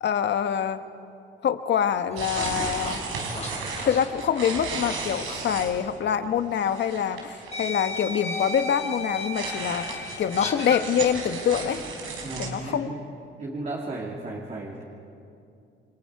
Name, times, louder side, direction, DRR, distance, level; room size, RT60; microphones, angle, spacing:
voice 1, 0.0-0.8 1.4-3.0 3.8-11.8 12.4-12.9, left 8 dB, 60° left, 9 dB, 1.2 m, -25 dB
sound 1, 2.0-5.0 5.3-5.5 6.6-6.7 7.5-10.8, left 3 dB, 35° left, 3.6 m, -35 dB
sound 2, 2.2-6.0 6.2-6.3 6.6-7.7 8.0-12.5, right 4 dB, 90° right, 4.2 m, -34 dB
voice 2, 12.2-13.0 13.4-14.8, right 2 dB, 40° right, -3 dB, 2.9 m, -34 dB
29.5 x 24.0 x 4.8 m, 2.6 s
cardioid pair, 90°, 20 cm